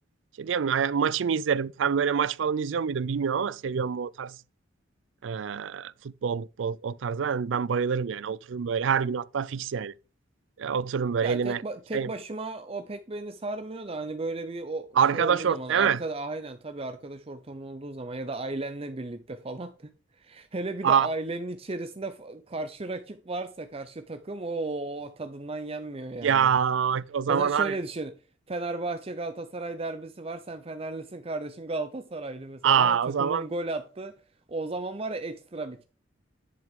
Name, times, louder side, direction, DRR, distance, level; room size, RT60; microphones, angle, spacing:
voice 1, 0.4-4.4 5.2-9.9 10.6-11.6 11.9-12.1 15.0-16.0 20.8-21.1 26.2-27.7 32.6-33.4, right 7 dB, 80° right, 0.4 m, -26 dB
voice 2, 11.2-26.5 27.3-28.1 28.5-34.2 34.5-35.8, right 2 dB, 30° right, 0.7 m, -35 dB
10.5 x 6.0 x 3.7 m
head